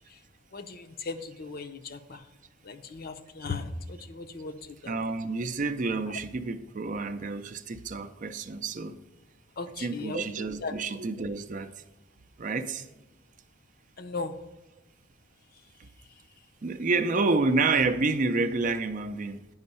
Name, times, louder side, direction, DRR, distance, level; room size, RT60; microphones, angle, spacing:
voice 1, 0.5-2.3 2.6-4.9 9.6-10.7 14.0-14.4, left 3 dB, 50° left, 0.6 m, -37 dB
voice 2, 4.9-8.9 9.8-11.7 12.4-12.9 15.8-15.9 16.6-19.4, right 3 dB, 40° right, 0.5 m, -29 dB
9.5 x 5.3 x 5.4 m
head